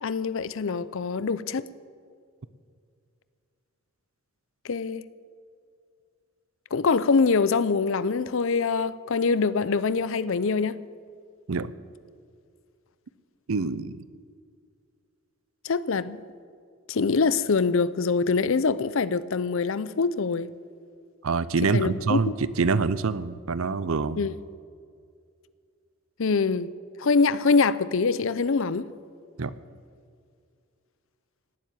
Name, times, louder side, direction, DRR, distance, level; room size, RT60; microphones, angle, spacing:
voice 1, 0.0-1.7 4.6-5.0 6.7-10.7 15.6-16.2 16.9-20.5 21.7-22.2 24.2-24.3 26.2-26.7 27.0-28.9, left 4 dB, 65° left, 0.6 m, -24 dB
voice 2, 13.5-14.0 21.2-24.3 29.4-29.5, right 4 dB, 75° right, 0.6 m, -26 dB
17.5 x 7.5 x 9.7 m
head